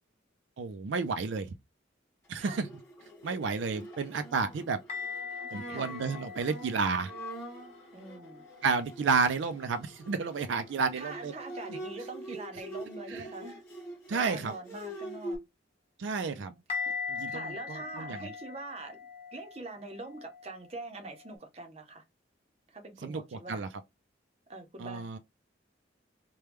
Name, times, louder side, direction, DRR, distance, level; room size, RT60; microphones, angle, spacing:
voice 1, 0.6-1.5 2.3-2.7 3.2-4.8 5.5-7.1 8.6-11.3 13.1-13.2 14.1-14.5 16.0-16.5 17.1-18.3 23.0-23.7 24.8-25.2, right 4 dB, 70° right, 0.4 m, -31 dB
Bowed string instrument, 2.4-15.4, right 1 dB, 15° left, 1.5 m, -45 dB
sound 1, 4.9-8.8 9.2-9.8 16.7-21.4, left 5 dB, 35° left, 0.7 m, -41 dB
voice 2, 7.9-8.4 10.9-13.6 14.1-15.4 16.2-16.6 17.3-19.0 19.3-22.0 22.7-23.7 24.5-25.1, right 3 dB, 30° right, 0.7 m, -44 dB
3.3 x 2.2 x 3.0 m
head